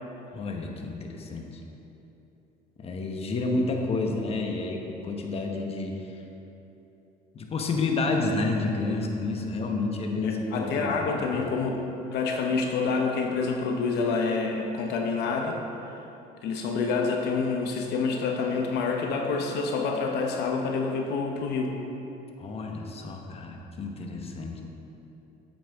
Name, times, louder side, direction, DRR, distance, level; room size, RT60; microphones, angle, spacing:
voice 1, 0.3-1.5 2.8-6.1 7.3-11.5 22.4-24.6, left 3 dB, 35° left, 2 dB, 1.0 m, -30 dB
voice 2, 10.2-11.8 12.1-15.6 16.4-21.8, left 4 dB, 80° left, 2 dB, 0.9 m, -27 dB
8.7 x 7.9 x 3.5 m, 3.0 s
cardioid pair, 110°, 17 cm